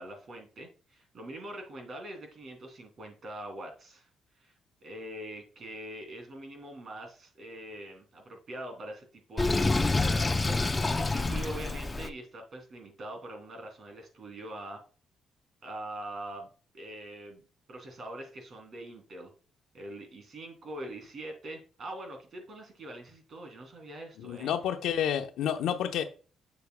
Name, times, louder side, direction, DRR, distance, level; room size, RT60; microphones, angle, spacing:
voice 1, 0.0-4.1 4.3-4.5 4.8-14.8 15.6-19.3 19.7-24.5, right 1 dB, 50° right, 2.8 m, -43 dB
Sink (filling or washing), 9.4-12.1, left 3 dB, 20° left, 0.5 m, -27 dB
voice 2, 24.2-26.0, left 9 dB, 85° left, 0.8 m, -30 dB
8.0 x 7.0 x 2.2 m
cardioid pair, 90°, 0 cm